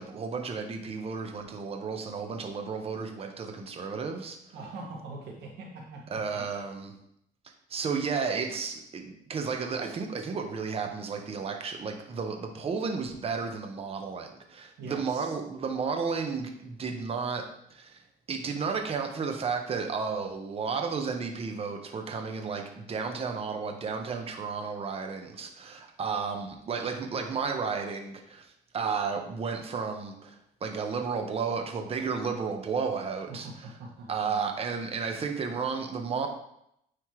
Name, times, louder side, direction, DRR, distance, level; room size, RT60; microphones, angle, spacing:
voice 1, 0.0-4.4 6.1-7.0 7.7-18.0 18.3-33.5 34.1-36.3, right 5 dB, 35° right, 4 dB, 0.9 m, -33 dB
voice 2, 4.5-6.6 14.8-15.4 33.3-34.5, right 2 dB, 85° right, -1 dB, 1.8 m, -43 dB
9.5 x 3.2 x 3.1 m, 0.75 s
cardioid pair, 110°, 17 cm